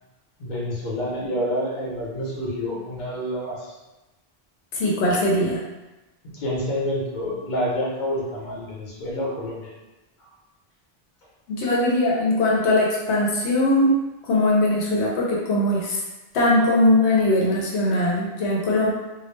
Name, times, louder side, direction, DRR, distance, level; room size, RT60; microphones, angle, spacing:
voice 1, 0.4-3.7 6.2-9.7, equal, 50° left, -5 dB, 0.8 m, -28 dB
voice 2, 4.7-5.6 11.5-13.9 14.2-16.0 16.3-18.9, left 1 dB, 80° left, -3 dB, 0.8 m, -20 dB
2.2 x 2.0 x 3.1 m, 1.1 s
omnidirectional pair, 1.1 m